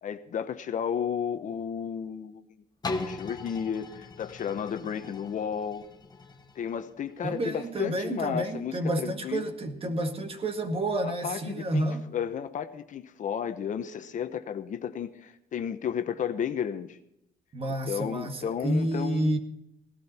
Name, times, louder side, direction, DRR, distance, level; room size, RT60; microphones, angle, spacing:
voice 1, 0.0-2.5 3.0-5.9 6.5-9.5 11.0-17.0 17.7-19.4, left 8 dB, 50° left, 9 dB, 1.0 m, -33 dB
sound 1, 2.8-8.6 9.1-9.2, left 3 dB, 25° left, 1.7 m, -40 dB
voice 2, 7.2-12.1 17.5-19.4, right 1 dB, 35° right, 7 dB, 1.9 m, -30 dB
17.5 x 12.5 x 4.4 m, 0.81 s
cardioid pair, 110°, 17 cm